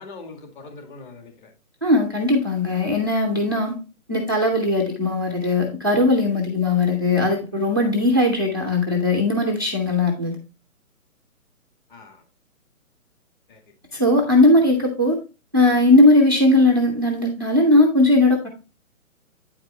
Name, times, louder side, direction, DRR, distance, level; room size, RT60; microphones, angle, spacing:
voice 1, 0.0-1.5 6.7-6.8 11.9-12.2 13.5-13.6, left 3 dB, 35° left, 3 dB, 2.0 m, -42 dB
voice 2, 1.8-3.8 4.1-10.4 13.9-15.2 15.5-18.5, left 2 dB, 15° right, 0 dB, 0.4 m, -18 dB
8.8 x 5.0 x 3.2 m, 0.32 s
hypercardioid pair, 150°, 43 cm